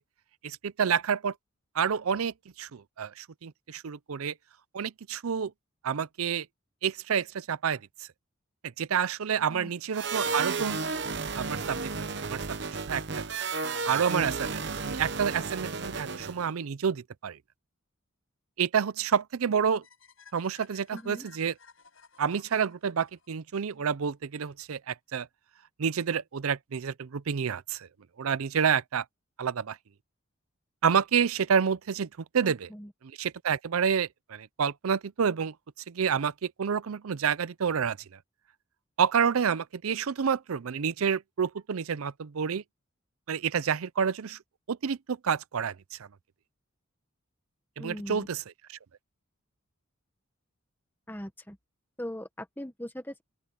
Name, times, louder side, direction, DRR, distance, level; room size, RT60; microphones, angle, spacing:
voice 1, 0.4-1.3 1.7-4.3 4.7-5.5 5.8-6.5 6.8-7.8 8.6-10.8 11.4-11.9 12.2-12.6 12.9-13.3 13.8-17.4 18.6-19.8 20.3-21.5 22.2-25.3 25.8-27.9 28.2-29.0 29.4-29.8 30.8-32.1 32.3-32.7 33.2-35.5 35.9-38.0 39.0-42.6 43.3-44.4 44.7-46.1 47.8-48.4 48.7-48.8, right 7 dB, 85° right, 0.5 m, -29 dB
sound 1, 9.9-16.5, right 4 dB, 55° right, 0.9 m, -33 dB
sound 2, 19.8-23.9, left 6 dB, 70° left, 6.0 m, -57 dB
voice 2, 20.9-21.2 32.4-32.9 47.8-48.3 51.1-51.6 52.0-53.2, equal, 10° left, 1.4 m, -40 dB
open air
head